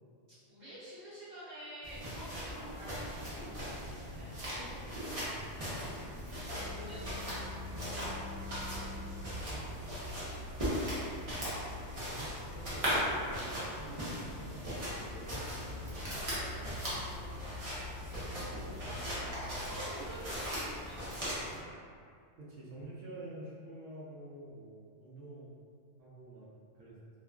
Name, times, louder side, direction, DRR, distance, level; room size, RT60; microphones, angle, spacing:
voice 1, 0.5-4.3 6.7-7.6 10.1-10.3 16.3-17.4 18.4-21.3, equal, 65° right, -13 dB, 1.0 m, -49 dB
sound 1, 1.8-21.6, equal, 35° right, 0.6 m, -39 dB
sound 2, 3.2-19.9, left 2 dB, 70° left, 0.8 m, -48 dB
voice 2, 11.8-16.5 16.8-16.9 22.4-25.6 26.0-26.5 26.7-27.0, right 1 dB, 85° right, -6 dB, 0.9 m, -48 dB
2.4 x 2.4 x 2.2 m, 2.2 s
omnidirectional pair, 1.2 m